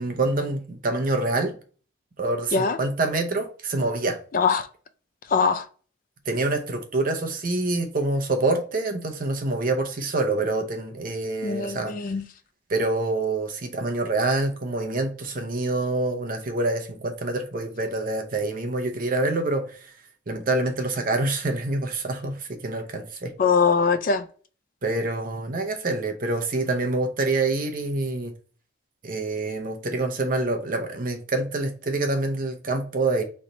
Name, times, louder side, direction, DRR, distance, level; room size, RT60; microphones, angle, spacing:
voice 1, 0.0-1.5 2.2-4.2 6.3-11.9 12.7-19.9 20.3-23.3 24.8-28.3 29.0-33.2, right 2 dB, 45° right, 0.7 m, -26 dB
voice 2, 4.3-4.7 5.3-5.7 11.4-12.2 23.4-24.3, left 5 dB, 45° left, 0.3 m, -22 dB
3.9 x 3.3 x 4.2 m
head